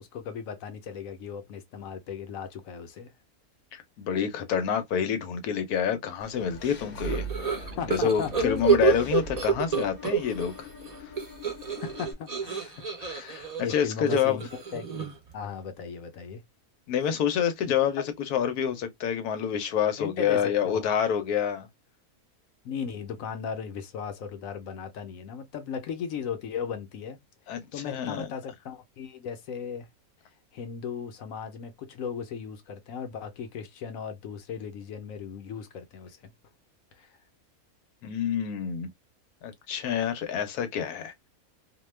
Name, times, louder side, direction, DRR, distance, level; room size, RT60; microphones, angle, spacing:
voice 1, 0.0-3.1 7.8-8.7 11.8-12.9 13.6-16.4 20.0-20.9 22.6-27.2 27.7-29.9 30.5-36.3 37.0-37.1, left 7 dB, 70° left, 1.0 m, -37 dB
voice 2, 3.7-10.7 13.0-14.4 16.9-21.7 27.5-28.3 38.0-38.9 39.4-41.3, left 8 dB, 90° left, 1.2 m, -28 dB
Engine / Mechanisms, 6.2-12.1, right 1 dB, 45° left, 0.8 m, -40 dB
sound 1, 7.0-10.5 10.8-15.3, right 7 dB, 40° right, 0.6 m, -28 dB
2.7 x 2.2 x 3.1 m
omnidirectional pair, 1.6 m